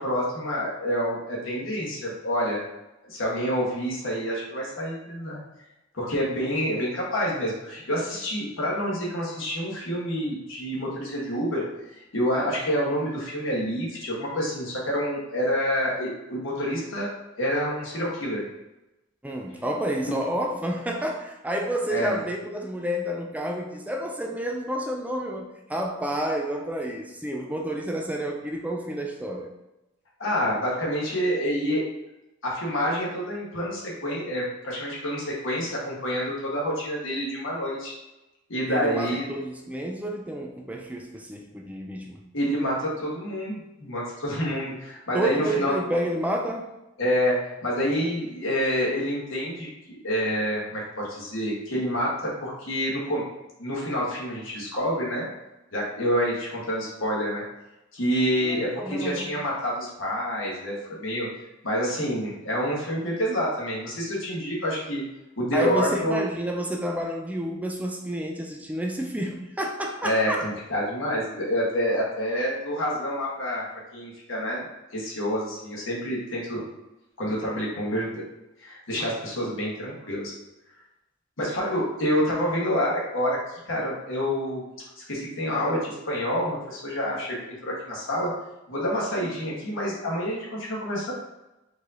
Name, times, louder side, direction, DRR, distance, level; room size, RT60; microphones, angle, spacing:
voice 1, 0.0-2.6 3.0-5.4 5.9-11.7 12.1-17.1 17.4-18.4 20.0-20.2 21.9-22.2 30.2-31.8 32.4-37.9 38.5-39.2 42.3-45.7 47.0-53.2 53.6-55.3 55.7-57.4 57.9-61.3 61.6-65.0 65.4-66.2 70.0-73.7 73.9-74.7 74.9-76.6 77.2-78.2 78.6-80.3 81.4-84.6 85.0-88.3 88.7-91.1, equal, 80° left, -4 dB, 1.5 m, -28 dB
voice 2, 19.2-29.5 38.7-42.2 45.1-46.7 58.4-59.3 65.5-70.5, right 1 dB, 10° right, 1 dB, 0.4 m, -30 dB
4.7 x 2.8 x 3.8 m, 0.96 s
head